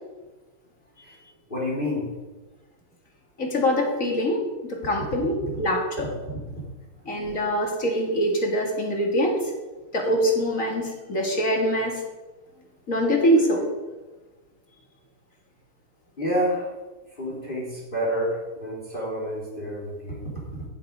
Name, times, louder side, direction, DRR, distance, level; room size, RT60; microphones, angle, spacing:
voice 1, 1.5-2.1 6.6-6.7 7.3-7.4 16.2-16.8 17.2-20.7, equal, 25° left, -5 dB, 3.4 m, -29 dB
voice 2, 3.4-5.3 5.6-6.1 7.1-9.5 9.9-12.0 12.9-13.7, equal, 40° left, 0 dB, 2.5 m, -24 dB
14.5 x 9.8 x 4.7 m, 1.2 s
omnidirectional pair, 2.2 m